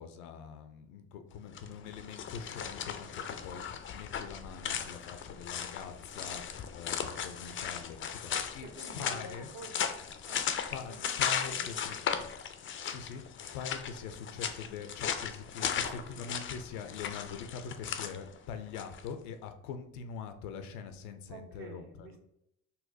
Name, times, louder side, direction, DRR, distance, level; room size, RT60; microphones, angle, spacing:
voice 1, 0.0-8.7 8.9-9.5 10.7-11.9 12.8-13.2 13.5-22.2, left 6 dB, 85° left, 8 dB, 0.5 m, -43 dB
sound 1, 1.4-19.1, left 8 dB, 30° left, 0.3 m, -37 dB
voice 2, 8.6-9.9 10.2-10.5 10.9-11.2 11.4-12.2 15.6-16.3 21.3-22.2, right 3 dB, 55° right, 2 dB, 1.0 m, -49 dB
4.0 x 2.2 x 2.6 m, 0.79 s
hypercardioid pair, 70°, 42 cm